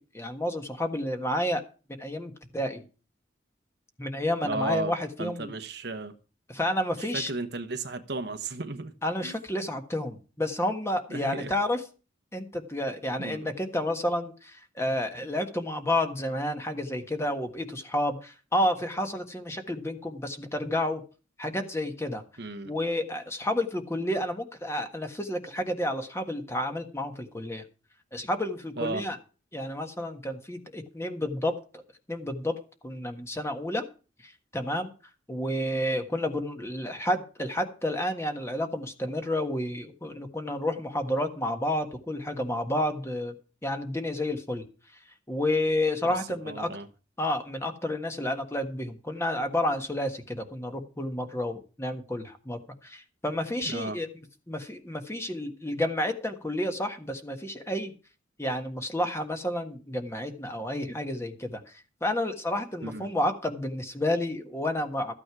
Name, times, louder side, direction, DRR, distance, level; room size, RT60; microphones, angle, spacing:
voice 1, 0.0-1.6 2.0-2.8 4.0-5.5 6.5-7.3 9.0-11.8 12.3-21.0 21.4-22.2 22.6-27.6 28.1-29.2 29.5-31.5 32.1-32.5 32.8-33.8 34.2-34.9 35.3-43.3 43.6-44.6 45.3-46.7 47.2-54.1 54.5-57.9 58.4-65.1, left 1 dB, 15° left, 1.5 m, -30 dB
voice 2, 4.4-4.9 5.2-6.1 7.0-8.9 9.2-9.4 11.1-11.6 13.2-13.5 22.4-22.7 28.8-29.0 46.3-46.9 53.7-54.0 62.8-63.1, right 3 dB, 60° right, 1.2 m, -34 dB
14.0 x 9.0 x 4.8 m
head